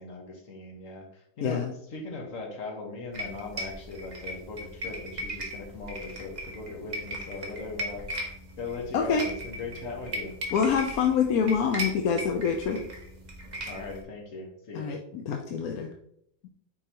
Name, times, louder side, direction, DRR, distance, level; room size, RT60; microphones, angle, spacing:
voice 1, 0.0-8.2 8.6-10.3 13.6-14.9, left 3 dB, 45° left, 1 dB, 1.6 m, -39 dB
voice 2, 1.4-1.7 8.9-9.3 10.5-12.8 14.7-15.9, left 6 dB, 65° left, 3 dB, 0.9 m, -26 dB
sound 1, 3.1-14.0, equal, 25° right, 1.1 m, -38 dB
6.8 x 4.7 x 2.9 m, 0.73 s
omnidirectional pair, 2.0 m